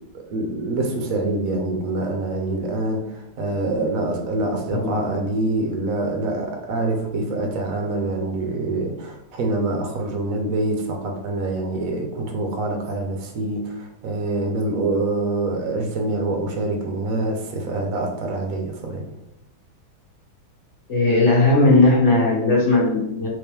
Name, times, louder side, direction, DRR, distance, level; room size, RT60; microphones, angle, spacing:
voice 1, 0.1-19.0, right 2 dB, 55° right, 3 dB, 1.0 m, -25 dB
voice 2, 20.9-23.3, left 2 dB, 40° left, -5 dB, 1.5 m, -17 dB
4.4 x 3.4 x 3.6 m, 0.83 s
omnidirectional pair, 2.2 m